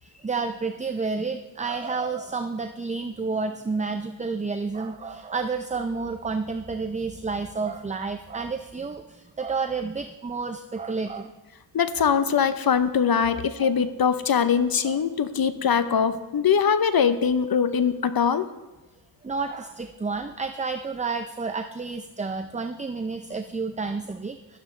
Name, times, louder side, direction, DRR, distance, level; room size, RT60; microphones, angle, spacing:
voice 1, 0.0-11.3 13.3-13.7 14.8-15.0 18.2-18.3 19.2-24.6, right 4 dB, 20° right, 7 dB, 0.5 m, -30 dB
voice 2, 11.7-18.5, left 7 dB, 60° left, 12 dB, 0.8 m, -22 dB
16.5 x 12.0 x 3.2 m, 1.1 s
wide cardioid pair, 95°, 41 cm